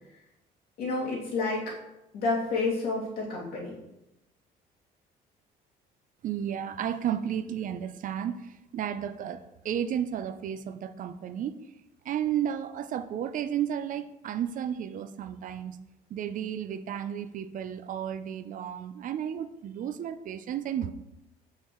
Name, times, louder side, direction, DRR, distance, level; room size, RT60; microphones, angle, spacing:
voice 1, 0.8-1.7 2.1-3.7, left 3 dB, 65° left, -5 dB, 2.7 m, -29 dB
voice 2, 6.2-8.4 8.7-11.6 12.1-15.8 16.1-20.9, right 9 dB, 50° right, 11 dB, 0.5 m, -33 dB
8.2 x 5.6 x 3.1 m, 0.90 s
cardioid pair, 110°, 17 cm